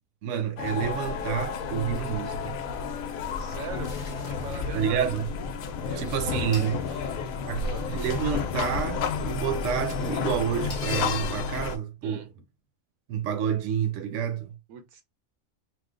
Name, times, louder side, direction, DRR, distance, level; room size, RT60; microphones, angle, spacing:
voice 1, 0.2-2.6 4.7-5.3 6.0-6.8 7.5-12.2 13.1-14.5, right 8 dB, 70° right, 0.9 m, -29 dB
sound 1, 0.6-11.8, left 5 dB, 85° left, 1.0 m, -31 dB
voice 2, 3.4-3.9 4.2-5.0 5.9-6.6 6.9-7.2 7.5-7.9 12.0-12.3 14.7-15.0, right 5 dB, 90° right, 1.2 m, -41 dB
sound 2, 3.8-11.6, left 4 dB, 45° left, 0.8 m, -44 dB
3.0 x 2.1 x 3.6 m
omnidirectional pair, 1.4 m